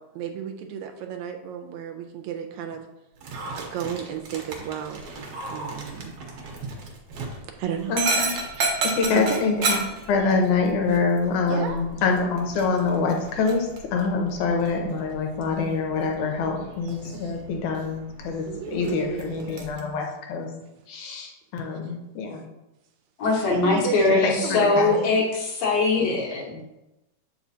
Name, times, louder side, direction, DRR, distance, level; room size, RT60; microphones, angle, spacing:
voice 1, 0.1-2.9 3.5-5.1 5.5-6.1 7.6-8.0 8.6-8.7 9.1-9.7 11.5-11.9 18.4-19.7 21.8-21.9 23.3-25.2, right 8 dB, 80° right, 4 dB, 1.8 m, -33 dB
Dog, 3.2-19.8, right 3 dB, 65° right, 1.6 m, -33 dB
voice 2, 7.9-8.3 9.0-9.8 10.1-20.5 20.9-22.4 24.1-25.1, left 4 dB, 85° left, 2 dB, 2.2 m, -25 dB
voice 3, 23.2-26.6, left 3 dB, 65° left, -2 dB, 2.0 m, -22 dB
7.2 x 4.9 x 2.7 m, 0.95 s
omnidirectional pair, 3.5 m